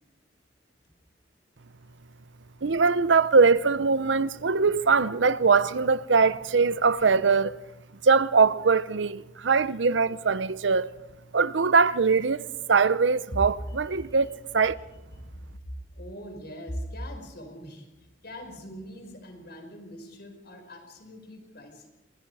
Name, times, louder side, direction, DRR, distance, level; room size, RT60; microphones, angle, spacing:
voice 1, 2.6-7.6 8.0-10.9 11.3-14.8, right 4 dB, 85° right, 0.7 m, -22 dB
voice 2, 13.7-14.3 15.6-21.9, equal, 60° left, 5.2 m, -41 dB
27.5 x 21.0 x 4.8 m
head